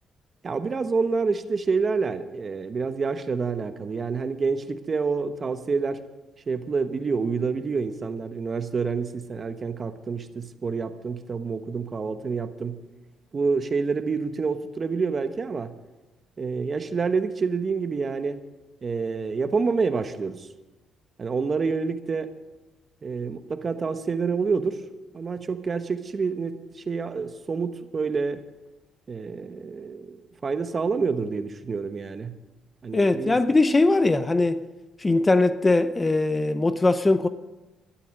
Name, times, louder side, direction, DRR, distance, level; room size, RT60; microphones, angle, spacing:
voice 1, 0.4-6.0 6.5-12.8 13.3-15.7 16.4-18.4 18.8-20.5 21.2-22.3 23.0-24.8 25.1-26.6 26.9-28.4 29.1-32.3 32.8-33.4, right 4 dB, 40° right, 1.1 m, -27 dB
voice 2, 32.9-34.6 35.0-37.3, left 2 dB, 20° left, 0.7 m, -21 dB
13.0 x 12.0 x 6.5 m
cardioid pair, 90°, 0 cm